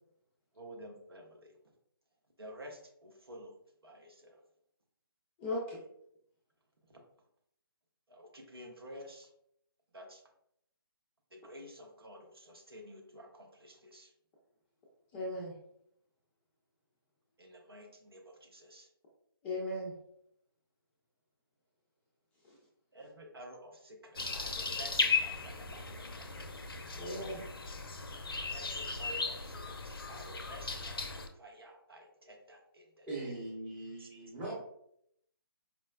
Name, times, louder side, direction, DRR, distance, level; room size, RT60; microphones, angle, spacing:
voice 1, 0.5-1.5 2.4-3.6 3.8-4.4 6.9-7.0 8.1-9.3 9.9-10.2 11.3-14.1 17.4-18.9 22.9-26.3 28.5-31.0 31.3-33.4 34.0-34.2, equal, 75° right, 0.8 m, -51 dB
voice 2, 5.4-5.8 15.1-15.5 19.4-19.9 22.4-22.6 27.0-27.4, left 1 dB, 10° left, 0.4 m, -37 dB
sound 1, 24.2-31.3, left 4 dB, 70° left, 0.5 m, -36 dB
voice 3, 33.1-34.5, right 2 dB, 10° right, 0.8 m, -41 dB
4.6 x 2.0 x 2.3 m
figure-of-eight pair, 145°, 13 cm